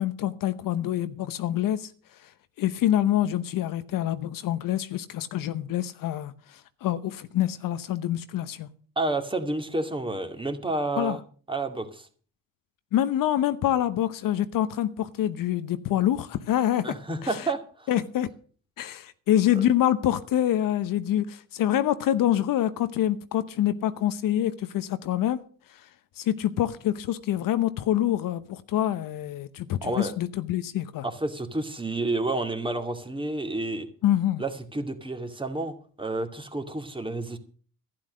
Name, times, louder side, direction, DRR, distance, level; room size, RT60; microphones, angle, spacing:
voice 1, 0.0-1.9 2.6-8.7 11.0-11.2 12.9-16.9 17.2-17.5 17.9-18.3 18.8-25.4 26.2-31.0 34.0-34.4, left 12 dB, 60° left, 0.9 m, -26 dB
voice 2, 9.0-11.2 11.5-12.1 16.8-17.9 19.5-19.6 29.8-30.2 31.0-33.9 34.4-37.4, right 2 dB, 15° right, 2.3 m, -30 dB
11.5 x 10.5 x 6.4 m
supercardioid pair, 75°, 38 cm